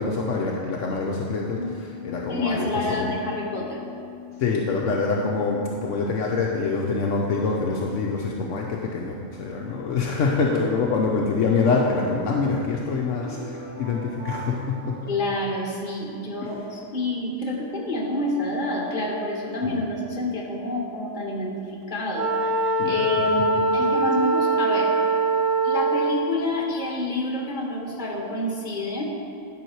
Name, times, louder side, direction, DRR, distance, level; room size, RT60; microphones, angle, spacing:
voice 1, 0.0-3.1 4.4-15.1 16.4-16.5 19.6-19.8 22.8-23.3, left 4 dB, 70° left, -1 dB, 1.0 m, -25 dB
Bass guitar, 1.6-7.8, left 7 dB, 30° right, 0.7 m, -41 dB
voice 2, 2.3-3.8 15.1-25.0 25.6-29.0, left 1 dB, 40° left, -2 dB, 1.5 m, -28 dB
sound 1, 13.1-16.2, right 2 dB, 15° left, 1.9 m, -41 dB
Wind instrument woodwind instrument, 22.1-26.3, right 2 dB, 75° right, 1.1 m, -22 dB
10.5 x 5.6 x 4.6 m, 2.4 s
omnidirectional pair, 1.3 m